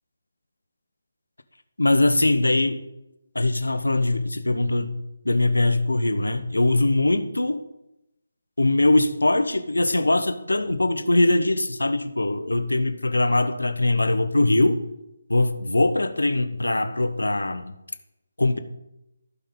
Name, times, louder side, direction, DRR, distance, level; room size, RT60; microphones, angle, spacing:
voice 1, 1.8-2.8 3.3-7.7 8.6-14.8 15.3-17.8 18.4-18.6, left 2 dB, 70° left, 10 dB, 1.0 m, -22 dB
16.0 x 5.6 x 3.6 m, 0.90 s
figure-of-eight pair, 150°, 0 cm